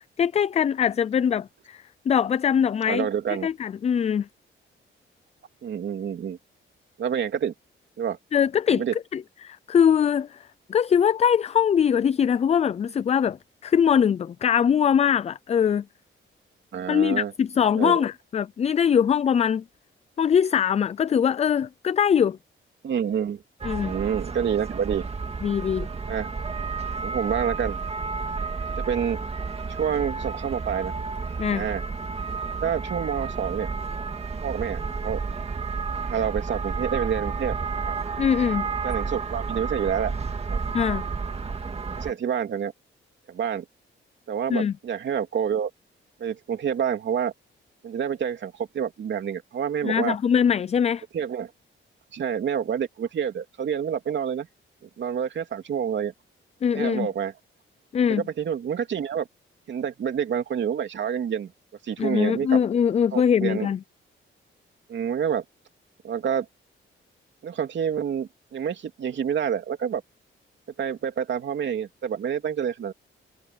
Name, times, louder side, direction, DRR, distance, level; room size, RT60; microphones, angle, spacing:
voice 1, 0.2-3.1 3.4-4.3 8.3-8.8 9.1-10.4 10.7-15.8 16.9-19.6 20.2-22.4 23.6-24.0 25.4-25.9 31.4-31.7 38.2-38.7 40.7-41.0 44.5-44.7 49.8-51.0 56.6-57.1 57.9-58.2 62.0-63.8, left 8 dB, 30° left, 0.3 m, -22 dB
voice 2, 2.9-3.5 5.6-6.4 7.0-7.5 8.0-8.2 8.7-8.9 16.7-17.3 17.7-18.0 22.8-23.4 23.8-25.0 26.1-26.3 27.0-27.8 28.8-29.2 29.7-30.9 31.5-31.8 32.6-33.7 34.4-35.2 36.0-37.5 37.9-38.0 38.8-40.1 40.5-40.6 42.0-42.7 43.3-43.6 44.3-45.7 46.2-47.3 47.8-50.2 51.1-51.5 52.1-54.5 55.0-56.1 56.7-57.3 58.1-59.3 59.7-61.5 61.8-62.6 63.1-63.7 64.9-65.4 66.0-66.5 67.4-70.0 70.8-72.9, right 8 dB, 60° right, 2.9 m, -28 dB
sound 1, 23.6-42.1, right 4 dB, 30° right, 2.0 m, -31 dB
wide cardioid pair, 145°, 21 cm